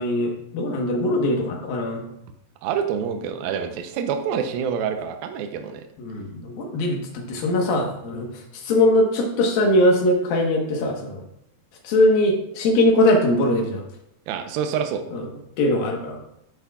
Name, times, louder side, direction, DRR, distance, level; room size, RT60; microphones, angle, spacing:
voice 1, 0.0-2.0 6.0-8.3 8.6-11.2 11.8-13.8 15.1-15.2 15.6-16.2, left 1 dB, 75° left, 2 dB, 3.1 m, -21 dB
voice 2, 2.6-5.8 14.3-15.0, right 7 dB, 80° right, 6 dB, 2.5 m, -27 dB
11.5 x 7.5 x 2.4 m, 0.79 s
omnidirectional pair, 4.2 m